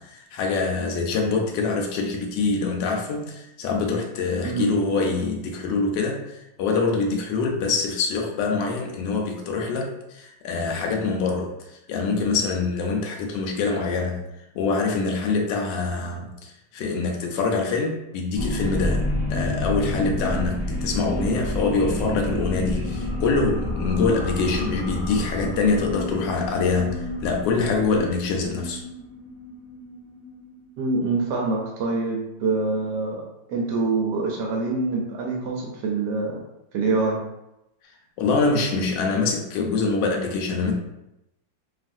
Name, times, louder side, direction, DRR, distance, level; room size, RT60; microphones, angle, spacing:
voice 1, 0.0-11.5 11.9-14.2 14.5-19.0 19.3-28.8 38.2-40.7, left 4 dB, 75° left, 1 dB, 1.2 m, -25 dB
sound 1, 18.3-31.2, left 1 dB, 20° left, 0.3 m, -29 dB
voice 2, 30.8-33.2 33.5-36.4 36.7-37.2, right 3 dB, 70° right, -1 dB, 1.1 m, -25 dB
3.1 x 2.4 x 2.5 m, 0.88 s
omnidirectional pair, 2.1 m